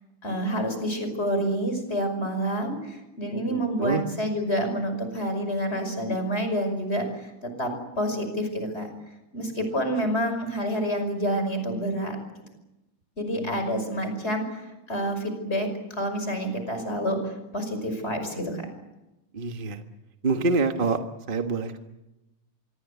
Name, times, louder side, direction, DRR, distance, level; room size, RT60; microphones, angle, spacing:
voice 1, 0.2-8.9 9.3-12.2 13.2-18.7, equal, 25° left, 7 dB, 5.8 m, -28 dB
voice 2, 3.5-4.0 13.4-13.5 19.3-19.8 20.2-21.0 21.3-21.8, right 3 dB, 30° right, 6 dB, 1.3 m, -26 dB
26.0 x 23.5 x 8.3 m, 0.96 s
omnidirectional pair, 2.4 m